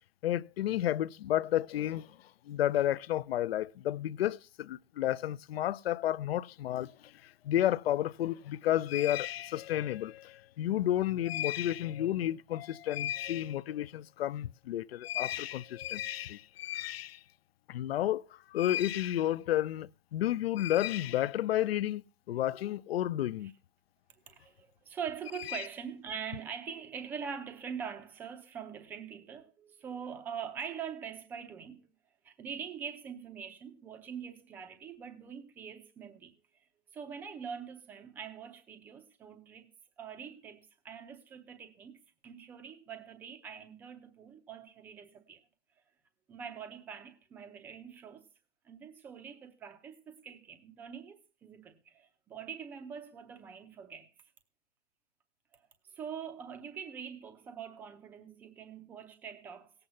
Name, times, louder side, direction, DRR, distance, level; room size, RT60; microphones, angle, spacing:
voice 1, 0.2-2.2 2.5-17.2 17.7-22.0 22.3-23.5 25.5-25.6, left 12 dB, 65° left, 0.5 m, -31 dB
voice 2, 24.3-31.8 32.2-36.3 36.9-39.7 40.0-45.4 46.3-48.2 48.6-54.1 55.5-55.6 55.9-59.7, right 7 dB, 5° right, 0.5 m, -43 dB
17.0 x 7.9 x 5.5 m
hypercardioid pair, 165°, 33 cm